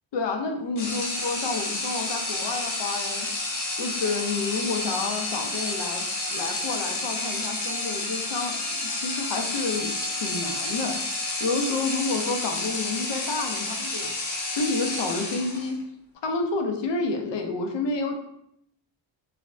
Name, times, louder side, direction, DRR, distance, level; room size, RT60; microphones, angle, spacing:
voice 1, 0.1-3.3 3.8-11.0 11.4-14.1 14.6-15.8 16.2-18.1, left 3 dB, 65° left, 3 dB, 0.5 m, -29 dB
sound 1, 0.8-15.8, left 2 dB, 90° left, 1.0 m, -30 dB
3.2 x 2.0 x 2.5 m, 0.73 s
wide cardioid pair, 160°, 46 cm